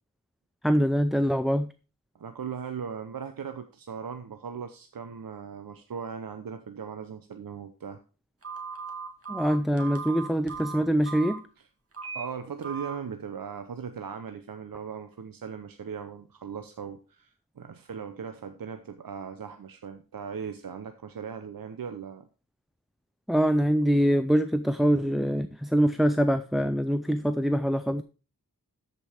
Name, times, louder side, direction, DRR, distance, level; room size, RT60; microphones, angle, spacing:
voice 1, 0.6-1.7 9.3-11.4 23.3-28.0, equal, ahead, 11 dB, 0.4 m, -24 dB
voice 2, 2.1-8.0 12.1-22.3, right 6 dB, 75° right, 8 dB, 0.8 m, -38 dB
Telephone, 8.4-11.4 11.9-12.2 12.6-12.9, right 6 dB, 40° right, 2.2 m, -37 dB
13.5 x 5.4 x 4.4 m, 0.34 s
wide cardioid pair, 105°, 35 cm